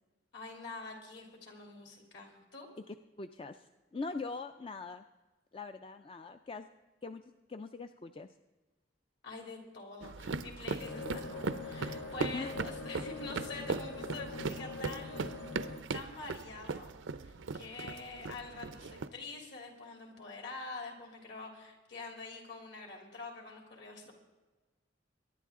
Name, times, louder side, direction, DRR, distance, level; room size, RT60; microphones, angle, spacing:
voice 1, 0.3-2.7 9.2-16.9 17.2-24.1, left 3 dB, 60° left, 2 dB, 3.4 m, -46 dB
voice 2, 2.9-5.0 5.5-6.7 7.0-8.3 12.3-12.5, left 3 dB, 30° left, 8 dB, 0.4 m, -42 dB
sound 1, 10.0-19.1, right 4 dB, 80° right, 0.6 m, -39 dB
sound 2, 10.8-15.8, left 4 dB, 80° left, 1.2 m, -43 dB
23.0 x 11.0 x 3.7 m, 1.2 s
head